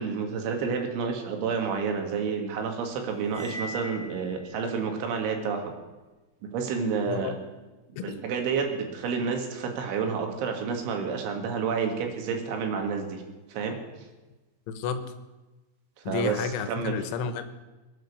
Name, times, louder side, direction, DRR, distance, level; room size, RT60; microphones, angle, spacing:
voice 1, 0.0-5.8 6.5-7.3 7.9-13.2 13.5-13.8 16.1-16.4 16.7-16.9, right 5 dB, 75° right, 3 dB, 4.4 m, -29 dB
Cymbal, 3.2-4.7, left 1 dB, 35° left, 5.7 m, -40 dB
voice 2, 14.7-15.1 16.0-17.4, left 6 dB, 80° left, 9 dB, 3.4 m, -31 dB
22.5 x 9.3 x 6.8 m, 1.2 s
omnidirectional pair, 5.5 m